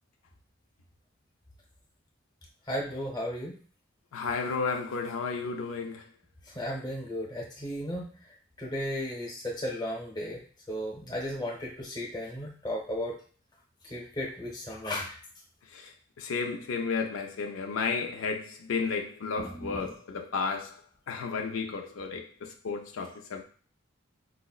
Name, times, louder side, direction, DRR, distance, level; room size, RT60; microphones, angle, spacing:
voice 1, 2.7-3.5 6.5-8.1 8.6-10.4 10.7-13.2 13.8-15.2 19.4-19.9, equal, 20° left, 0.8 m, -35 dB
voice 2, 4.1-6.0 15.7-15.9 16.2-20.8 21.1-23.4, left 4 dB, 85° left, 0.4 m, -32 dB
4.6 x 2.1 x 2.3 m
head